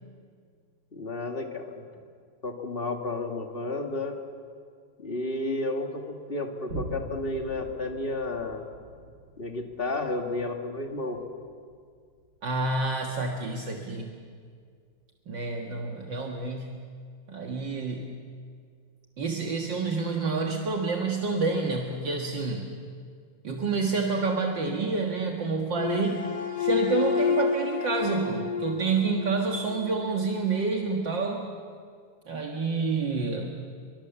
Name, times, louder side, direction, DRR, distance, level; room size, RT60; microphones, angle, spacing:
voice 1, 0.9-1.9 2.4-4.2 5.0-8.6 9.4-11.2, left 2 dB, 25° left, 3 dB, 1.3 m, -32 dB
Boom, 6.7-13.6 14.1-14.2, right 1 dB, 30° right, 1.8 m, -44 dB
voice 2, 12.4-14.1 15.3-16.8 17.3-18.2 19.2-22.7 23.4-26.3 26.6-31.5 32.3-33.5, right 4 dB, 45° right, 1 dB, 1.6 m, -28 dB
sound 1, 25.7-30.1, left 6 dB, 50° left, 2.8 m, -29 dB
29.5 x 24.0 x 7.1 m, 2.1 s
omnidirectional pair, 4.0 m